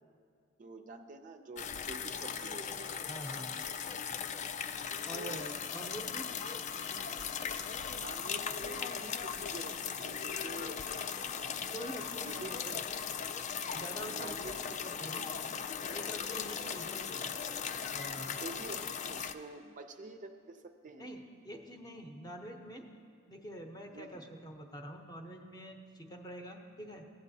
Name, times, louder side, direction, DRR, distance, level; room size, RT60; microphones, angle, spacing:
voice 1, 0.6-2.9 5.1-5.5 7.9-10.8 11.3-11.7 12.2-12.8 14.0-14.7 16.6-16.8 18.4-21.1 23.9-24.2, right 3 dB, 40° right, 6 dB, 0.4 m, -47 dB
sound 1, 1.6-19.3, left 7 dB, 35° left, 0.3 m, -38 dB
voice 2, 3.1-3.5 5.0-6.3 11.6-12.9 13.7-15.3 15.9-17.2 17.9-18.4 21.0-22.9 23.3-27.1, equal, 20° left, 3 dB, 0.7 m, -46 dB
15.5 x 8.3 x 2.7 m, 2.2 s
head